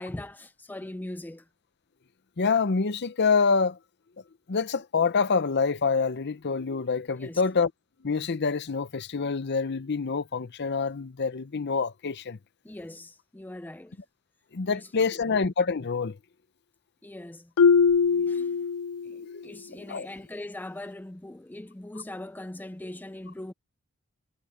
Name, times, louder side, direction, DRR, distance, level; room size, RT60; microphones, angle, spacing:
voice 1, 0.0-1.5 7.2-7.4 12.6-14.0 14.7-15.2 17.0-17.5 18.1-18.6 19.0-23.5, left 1 dB, 10° left, 0.4 m, -41 dB
voice 2, 2.4-3.8 4.5-7.7 8.0-12.4 14.5-16.2 18.1-18.5 19.3-19.4 19.9-20.1, left 5 dB, 50° left, 0.7 m, -26 dB
Marimba xylophone, 17.6-19.3, left 5 dB, 85° left, 0.4 m, -22 dB
head